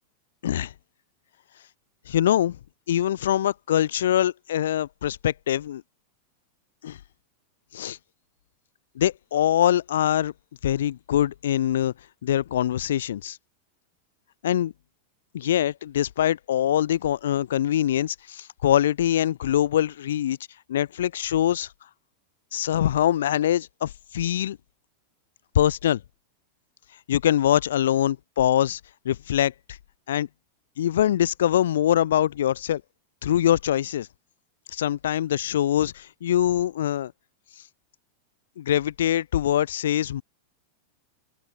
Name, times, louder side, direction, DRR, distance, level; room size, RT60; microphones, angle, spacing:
voice 1, 2.1-2.6 2.9-5.8 6.8-7.0 7.7-8.0 9.0-10.3 10.6-11.9 12.2-13.4 14.4-14.7 15.3-20.4 20.7-21.7 22.5-24.6 25.5-26.0 27.1-28.8 29.0-29.5 30.1-30.3 30.8-32.8 33.2-34.1 34.7-37.1 38.6-40.2, left 11 dB, 60° left, 0.5 m, -23 dB
open air
figure-of-eight pair, 90°, 0 cm